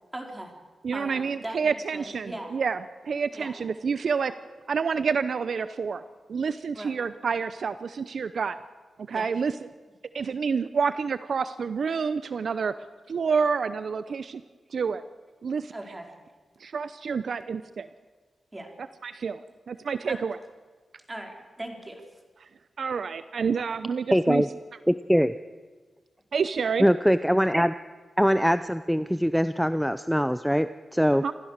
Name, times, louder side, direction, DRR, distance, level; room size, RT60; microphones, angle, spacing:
voice 1, 0.1-0.5 0.9-2.6 3.3-3.5 6.7-6.9 9.1-9.3 15.7-16.1 18.5-18.7 20.1-20.2 21.1-22.0, right 1 dB, 20° right, 2 dB, 4.4 m, -39 dB
voice 2, 0.8-2.8 3.0-4.3 4.7-6.0 6.3-8.6 9.0-9.5 10.1-12.7 13.1-14.4 14.7-15.0 15.4-15.7 16.6-17.9 19.0-19.4 19.7-20.4 22.8-24.4 26.3-26.9 31.2-31.3, right 5 dB, 70° right, 13 dB, 0.7 m, -28 dB
voice 3, 24.1-24.5 24.9-25.3 26.8-27.7 28.2-31.2, equal, ahead, 12 dB, 0.6 m, -22 dB
27.5 x 14.5 x 6.6 m, 1.4 s
cardioid pair, 75°, 0 cm